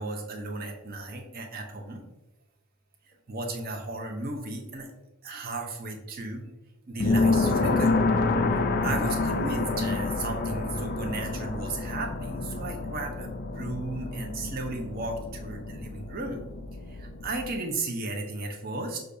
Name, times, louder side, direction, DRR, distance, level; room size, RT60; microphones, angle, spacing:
voice 1, 0.0-2.0 3.3-4.9 5.2-6.4 6.9-8.0 8.8-16.4 16.9-19.0, right 2 dB, 45° right, 2 dB, 0.7 m, -35 dB
sound 1, 7.0-17.5, left 3 dB, 45° left, 0.3 m, -28 dB
6.4 x 2.3 x 2.6 m, 1.0 s
head